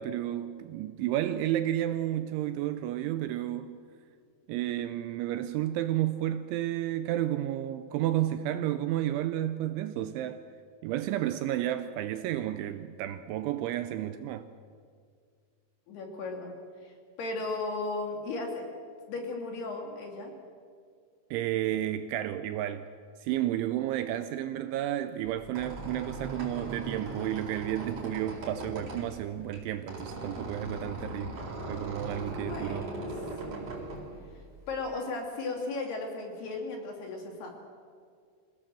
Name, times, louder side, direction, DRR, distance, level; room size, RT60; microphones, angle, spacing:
voice 1, 0.0-3.8 4.5-10.4 10.8-14.5 21.3-22.8 23.2-32.9, right 12 dB, 80° right, 2.8 m, -31 dB
voice 2, 15.9-16.5 16.8-18.7 19.1-20.3 32.4-33.1 33.5-33.7 34.7-37.5, left 3 dB, 55° left, 4.3 m, -36 dB
Squeak, 25.2-34.8, right 2 dB, 40° right, 5.2 m, -40 dB
26.0 x 17.0 x 7.6 m
omnidirectional pair, 6.0 m